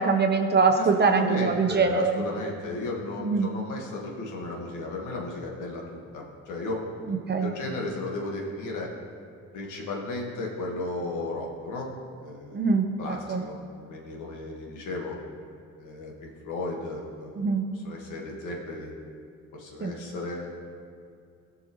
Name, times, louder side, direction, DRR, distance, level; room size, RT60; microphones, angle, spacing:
voice 1, 0.0-2.2 3.2-3.5 7.1-7.5 12.5-13.4 17.4-17.6 19.8-19.9, right 4 dB, 35° right, 5 dB, 0.9 m, -23 dB
voice 2, 0.7-6.8 7.1-8.9 9.5-11.9 12.2-12.6 13.0-13.6 13.9-15.2 15.8-17.4 17.7-18.9 19.5-20.5, left 2 dB, 80° left, -1 dB, 1.7 m, -35 dB
16.0 x 5.7 x 3.1 m, 2.3 s
cardioid pair, 90°, 30 cm